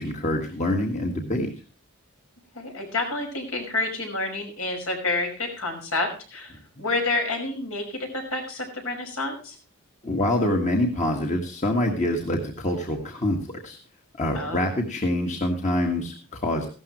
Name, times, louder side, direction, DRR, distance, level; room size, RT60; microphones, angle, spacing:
voice 1, 0.0-1.5 10.0-13.8 14.1-16.7, left 1 dB, 30° left, 2 dB, 1.7 m, -25 dB
voice 2, 2.5-6.5 6.8-9.6 14.3-14.7, left 2 dB, 70° left, 3 dB, 5.5 m, -29 dB
16.0 x 13.0 x 3.1 m, 0.37 s
head